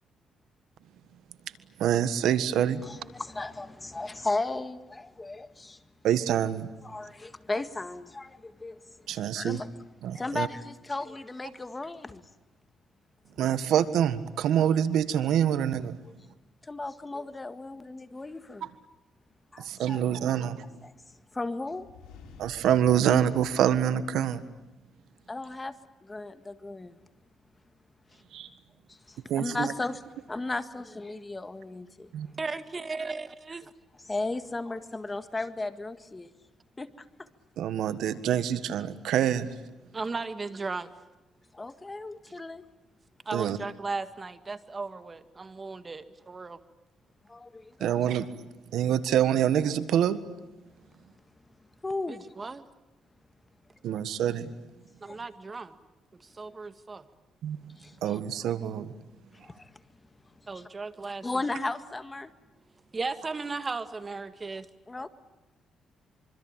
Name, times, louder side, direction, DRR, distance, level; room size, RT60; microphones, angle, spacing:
voice 1, 1.8-2.8 6.0-6.7 9.1-9.6 10.0-10.5 13.4-16.0 19.6-20.6 22.4-24.4 28.3-28.5 29.3-29.7 32.1-32.3 37.6-39.5 43.3-43.6 47.8-48.3 48.7-50.2 53.8-54.5 57.4-57.6 58.0-58.9, right 10 dB, 80° right, 1.5 m, -26 dB
voice 2, 2.8-5.8 6.8-8.8 9.1-9.7 10.1-12.3 16.6-18.7 19.5-20.0 20.3-20.4 20.8-20.9 21.3-21.9 25.3-25.8 26.0-27.0 28.1-28.2 28.5-28.6 28.9-30.0 30.3-32.1 34.1-36.3 36.8-37.3 41.5-42.6 47.3-48.0 51.8-52.3 55.1-55.2 57.7-58.2 59.3-59.7 60.5-60.6 61.2-62.3 64.5-64.6 64.9-65.1, left 2 dB, 20° left, 1.7 m, -35 dB
sound 1, 21.6-24.6, left 5 dB, 85° left, 5.7 m, -52 dB
voice 3, 32.4-33.6 39.9-40.9 43.3-46.6 52.1-52.6 55.0-55.8 56.1-57.1 60.5-61.5 62.9-64.7, right 4 dB, 30° right, 2.0 m, -36 dB
25.5 x 25.0 x 9.0 m
cardioid pair, 90°, 0 cm